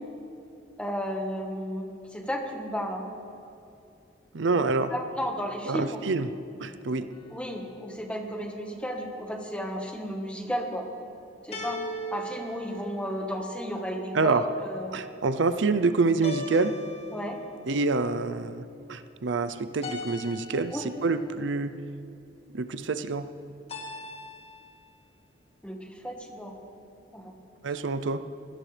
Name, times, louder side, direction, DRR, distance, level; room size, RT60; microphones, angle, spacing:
voice 1, 0.8-3.1 4.9-6.0 7.0-10.9 11.4-11.8 12.1-15.0 17.1-17.4 20.7-20.9 25.6-26.6 27.1-27.4, equal, 5° left, 2 dB, 1.5 m, -33 dB
voice 2, 4.3-4.9 5.7-6.3 6.6-7.1 14.1-14.4 14.9-16.7 17.7-21.7 22.5-23.3 27.6-28.2, right 3 dB, 80° right, 11 dB, 0.6 m, -27 dB
sound 1, 7.1-7.8 11.5-13.5 16.2-17.6 19.8-21.0 23.7-24.7, left 1 dB, 35° left, 1.9 m, -39 dB
24.0 x 17.5 x 3.4 m, 2.7 s
head